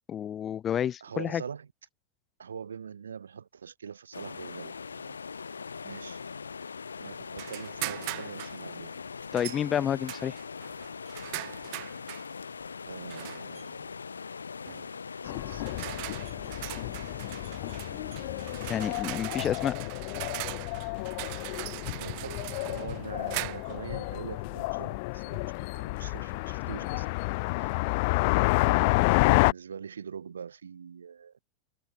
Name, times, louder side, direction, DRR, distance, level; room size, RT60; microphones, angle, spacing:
voice 1, 0.1-1.4 9.3-10.4 18.7-19.8, left 9 dB, 25° left, 0.5 m, -29 dB
voice 2, 1.0-1.7 2.4-5.2 5.8-6.2 7.0-9.0 12.9-13.9 15.2-16.2 21.9-25.5 25.7-27.1 27.6-27.8 28.6-31.4, right 7 dB, 75° right, 1.7 m, -43 dB
sound 1, 4.1-19.0, left 5 dB, 75° left, 2.1 m, -41 dB
sound 2, 7.4-8.6 9.4-9.6 10.1-12.3 13.1-13.6 14.7-14.9 15.5-23.8, right 33 dB, 50° right, 1.9 m, -40 dB
sound 3, 15.2-29.5, left 27 dB, 50° left, 1.4 m, -30 dB
figure-of-eight pair, 90°, 0 cm